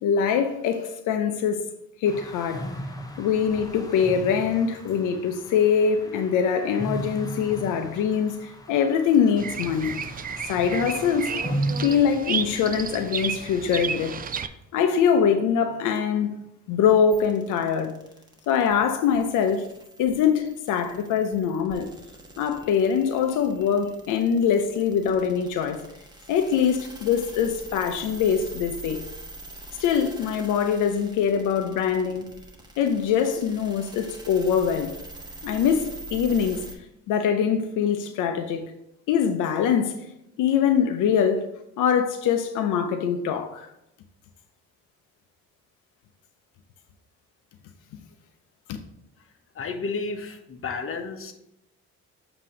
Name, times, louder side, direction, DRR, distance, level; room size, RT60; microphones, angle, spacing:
voice 1, 0.0-1.7 2.0-2.7 3.2-10.0 10.4-11.3 11.8-14.2 14.7-16.4 16.7-17.9 18.5-19.7 20.0-21.9 22.4-25.8 26.3-29.0 29.8-32.3 32.8-35.0 35.4-36.6 37.1-38.6 39.1-40.0 40.4-41.5 41.8-43.7, left 7 dB, 85° left, 0.6 m, -23 dB
sound 1, 2.0-11.8, right 1 dB, 10° left, 0.8 m, -36 dB
Bird vocalization bird call bird song, 9.4-14.5, right 7 dB, 30° right, 0.4 m, -32 dB
sound 2, 17.1-36.8, right 2 dB, 15° right, 1.2 m, -44 dB
voice 2, 49.5-51.3, left 4 dB, 45° left, 0.9 m, -32 dB
7.5 x 2.9 x 4.9 m
cardioid pair, 90°, 30 cm